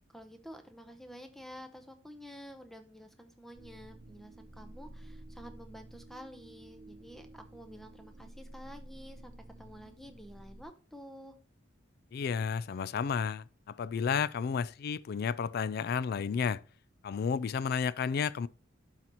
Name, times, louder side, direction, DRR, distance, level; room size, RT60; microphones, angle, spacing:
voice 1, 0.1-11.3, equal, ahead, 0.7 m, -50 dB
sound 1, 3.5-10.6, right 1 dB, 40° right, 0.9 m, -51 dB
voice 2, 12.1-16.6 17.0-18.5, left 6 dB, 55° left, 0.3 m, -32 dB
11.5 x 4.1 x 3.0 m
head